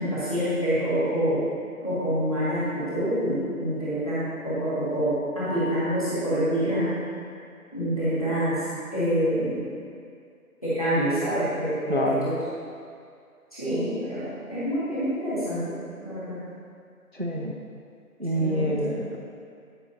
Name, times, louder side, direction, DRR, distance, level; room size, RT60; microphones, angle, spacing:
voice 1, 0.0-1.5 1.8-7.0 7.7-9.6 10.6-12.4 13.5-16.4 18.3-18.9, equal, 25° left, -12 dB, 1.8 m, -27 dB
voice 2, 11.9-12.3 17.1-17.6 18.2-19.2, equal, 45° right, 0 dB, 0.5 m, -26 dB
11.0 x 5.4 x 2.7 m, 2.3 s
figure-of-eight pair, 170°, 45 cm